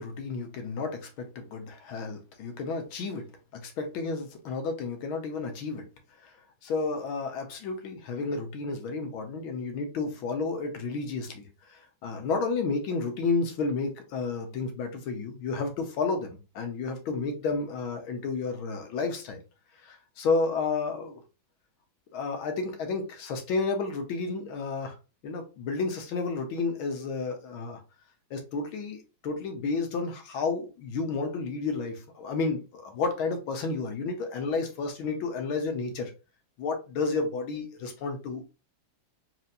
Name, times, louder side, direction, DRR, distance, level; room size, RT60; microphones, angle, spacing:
voice 1, 0.0-3.2 3.5-5.8 6.2-6.3 6.6-19.4 19.8-21.2 22.1-25.0 25.2-27.8 28.3-36.1 36.6-38.4, left 4 dB, 90° left, 1.7 m, -31 dB
4.4 x 3.3 x 2.6 m
omnidirectional pair, 2.2 m